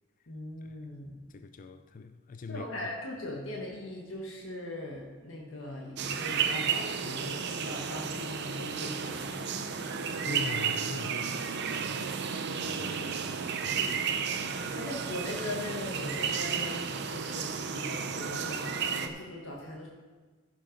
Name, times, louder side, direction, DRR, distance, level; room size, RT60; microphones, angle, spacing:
voice 1, 0.3-1.2 2.5-9.6 14.7-19.9, left 1 dB, 70° left, 1.3 m, -40 dB
voice 2, 1.3-2.7 10.2-12.1 12.6-14.8, left 4 dB, 40° left, 0.4 m, -43 dB
sound 1, 6.0-19.1, right 6 dB, 60° right, 0.7 m, -33 dB
sound 2, 6.1-16.6, right 6 dB, 85° right, 0.4 m, -44 dB
15.0 x 5.6 x 5.1 m
head